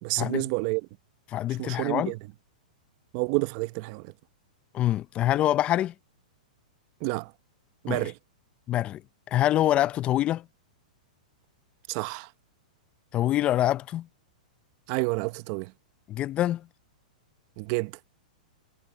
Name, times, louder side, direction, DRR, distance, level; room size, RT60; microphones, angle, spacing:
voice 1, 0.0-0.8 1.6-2.2 3.1-4.0 7.0-7.3 7.8-8.1 11.9-12.3 14.9-15.7 17.6-17.9, right 25 dB, 45° right, 0.9 m, -29 dB
voice 2, 1.3-2.1 4.7-5.9 7.9-8.1 8.7-9.0 9.3-10.4 13.1-14.1 16.1-16.7, left 13 dB, 25° left, 0.5 m, -25 dB
hypercardioid pair, 140°, 4 cm